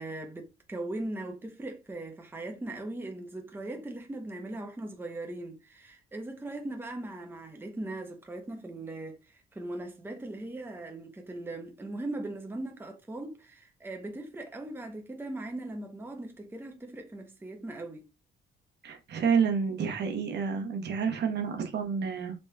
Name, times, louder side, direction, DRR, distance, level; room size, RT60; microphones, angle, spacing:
voice 1, 0.0-18.1, right 2 dB, 10° right, 0.7 m, -39 dB
voice 2, 18.8-22.3, right 6 dB, 60° right, 0.9 m, -29 dB
4.1 x 3.2 x 2.2 m
cardioid pair, 90°, 20 cm